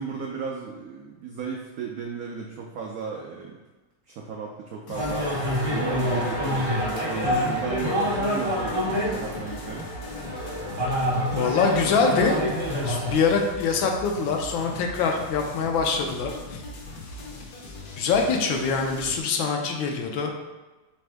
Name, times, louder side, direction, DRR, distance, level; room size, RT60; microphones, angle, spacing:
voice 1, 0.0-3.6 4.1-5.3 5.7-9.9, right 5 dB, 85° right, 0 dB, 0.7 m, -35 dB
sound 1, 4.9-19.2, left 1 dB, 65° left, 1.0 m, -40 dB
sound 2, 4.9-13.1, equal, 50° right, 0.3 m, -27 dB
voice 2, 7.2-7.6 11.3-12.4 12.8-16.6 18.0-20.3, left 5 dB, 85° left, 2 dB, 1.4 m, -24 dB
4.0 x 3.5 x 3.3 m, 1.2 s
omnidirectional pair, 2.1 m